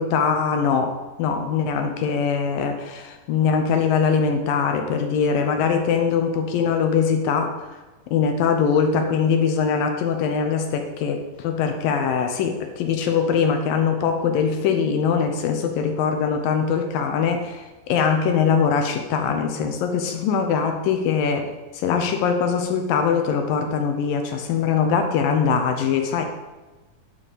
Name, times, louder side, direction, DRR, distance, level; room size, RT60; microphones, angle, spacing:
voice 1, 0.0-7.7 8.1-26.2, left 6 dB, 75° left, 5 dB, 2.2 m, -22 dB
11.0 x 5.1 x 5.2 m, 1.2 s
omnidirectional pair, 4.6 m